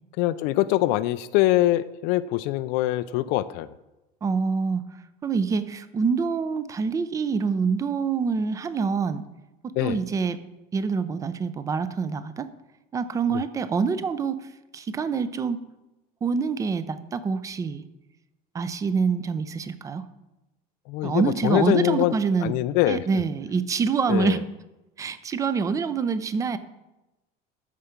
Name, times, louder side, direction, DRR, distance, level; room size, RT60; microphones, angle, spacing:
voice 1, 0.2-3.7 9.8-10.0 20.9-22.1 22.4-23.0 24.1-24.4, left 15 dB, 65° left, 14 dB, 0.5 m, -23 dB
voice 2, 4.2-4.8 5.2-9.2 9.6-10.4 10.7-12.5 12.9-14.5 14.7-15.6 16.2-17.8 18.5-20.0 21.0-22.5 22.9-24.4 25.0-26.6, right 5 dB, 20° right, 13 dB, 0.5 m, -26 dB
13.5 x 4.9 x 5.8 m, 1.0 s
cardioid pair, 165°, 18 cm